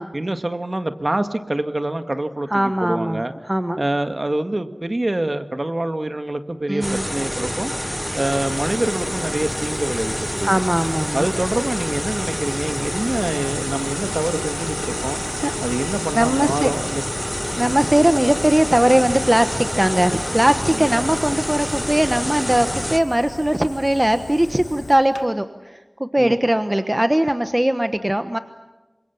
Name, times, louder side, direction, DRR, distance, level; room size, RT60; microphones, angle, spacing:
voice 1, 0.1-3.3 3.8-7.7 8.1-10.5 11.1-15.2 15.6-17.0 20.7-20.9 26.2-26.4, right 1 dB, 40° right, 8 dB, 1.9 m, -25 dB
voice 2, 2.5-3.8 6.7-7.0 10.4-11.3 15.4-15.5 16.1-16.7 17.6-28.4, right 1 dB, 20° right, 9 dB, 1.2 m, -20 dB
sound 1, 6.8-23.0, equal, 5° left, 0.8 m, -27 dB
Fire, 8.3-25.3, left 2 dB, 80° left, 1.9 m, -38 dB
28.0 x 25.5 x 7.1 m, 1.1 s
wide cardioid pair, 65°, 0 cm